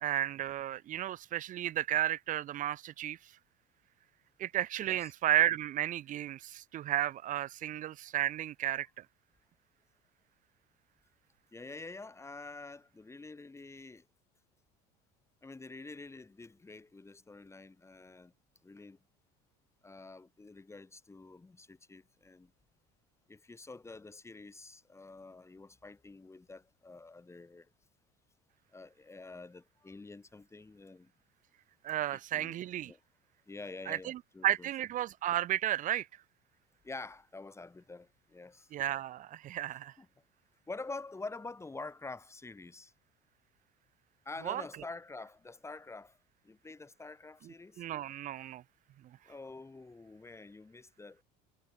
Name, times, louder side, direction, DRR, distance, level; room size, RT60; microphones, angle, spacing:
voice 1, 0.0-3.2 4.4-8.9 31.8-32.9 33.9-36.1 38.7-39.9 44.4-44.6 47.4-48.6, right 13 dB, 40° right, 0.6 m, -33 dB
voice 2, 4.8-5.1 11.5-14.0 15.4-18.3 18.6-19.0 19.8-22.5 23.3-27.7 28.7-31.1 32.1-32.6 32.9-33.0 33.5-34.7 36.8-38.7 39.7-40.1 40.7-42.9 44.2-46.2 46.4-47.8 49.3-51.2, left 3 dB, 15° left, 2.5 m, -47 dB
supercardioid pair, 105°, 20 cm